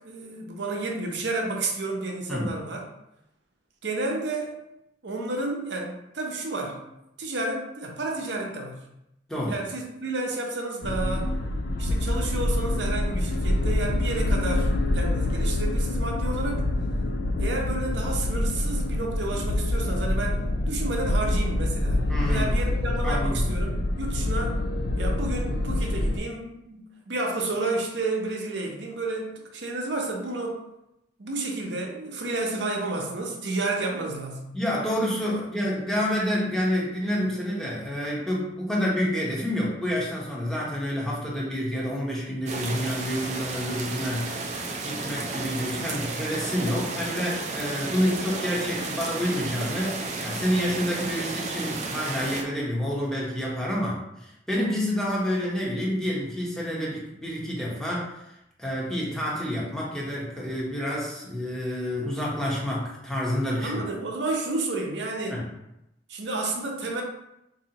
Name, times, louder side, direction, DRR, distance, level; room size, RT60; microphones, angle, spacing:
voice 1, 0.0-2.8 3.8-4.6 5.0-6.9 7.2-8.9 9.5-11.3 11.8-16.7 17.4-24.6 25.0-30.6 31.2-34.6 63.6-65.4 66.1-67.0, right 2 dB, 70° right, 1 dB, 0.7 m, -31 dB
sound 1, 10.8-26.2, left 1 dB, 60° left, 0.4 m, -26 dB
voice 2, 22.1-22.5 23.0-23.4 34.5-44.5 44.8-58.1 58.6-63.8 65.3-65.5, equal, 5° left, -5 dB, 0.9 m, -28 dB
sound 2, 42.5-52.4, right 3 dB, 40° right, 0.4 m, -33 dB
4.1 x 2.7 x 2.8 m, 0.85 s
head